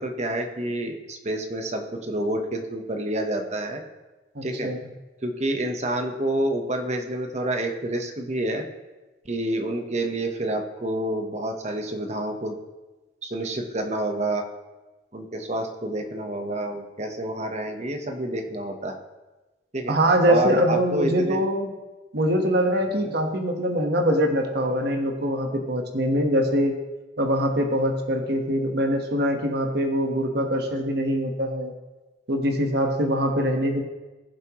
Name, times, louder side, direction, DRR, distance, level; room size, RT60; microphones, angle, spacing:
voice 1, 0.0-3.8 4.4-4.7 5.2-8.6 9.2-12.5 13.2-14.4 15.1-19.0 19.7-19.9 20.3-21.4 22.9-23.1, right 1 dB, 35° right, 5 dB, 1.1 m, -28 dB
voice 2, 4.3-4.8 19.9-21.7 22.1-26.8 27.2-31.7 32.3-33.8, equal, 55° right, 4 dB, 1.3 m, -23 dB
20.0 x 7.5 x 3.1 m, 1.2 s
head